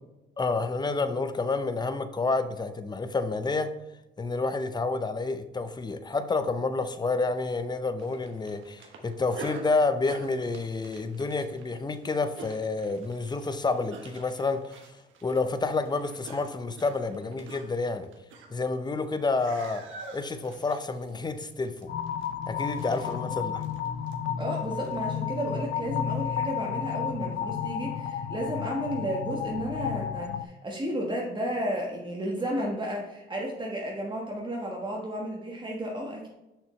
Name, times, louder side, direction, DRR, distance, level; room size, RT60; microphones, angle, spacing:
voice 1, 0.4-3.7 4.2-14.8 15.2-18.1 18.5-19.9 20.1-21.9 22.5-23.6, left 3 dB, 20° left, 10 dB, 0.6 m, -29 dB
sound 1, 8.0-19.1 19.3-25.2, right 3 dB, 80° right, 1.2 m, -47 dB
sound 2, 21.9-30.4, left 8 dB, 65° left, 0.5 m, -32 dB
voice 2, 24.4-36.3, right 1 dB, 25° right, -2 dB, 1.3 m, -33 dB
6.6 x 6.2 x 3.2 m, 0.99 s
cardioid pair, 90°, 20 cm